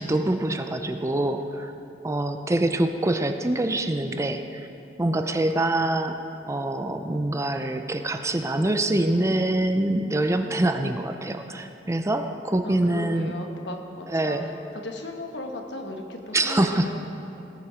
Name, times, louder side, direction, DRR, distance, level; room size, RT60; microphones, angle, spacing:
voice 1, 0.0-1.7 2.0-4.7 5.0-6.2 6.5-13.3 14.1-14.5 16.3-16.9, right 1 dB, 15° right, 7 dB, 0.5 m, -25 dB
voice 2, 12.6-14.4 14.7-17.0, left 2 dB, 70° left, 3 dB, 1.2 m, -36 dB
18.0 x 7.2 x 5.0 m, 2.8 s
head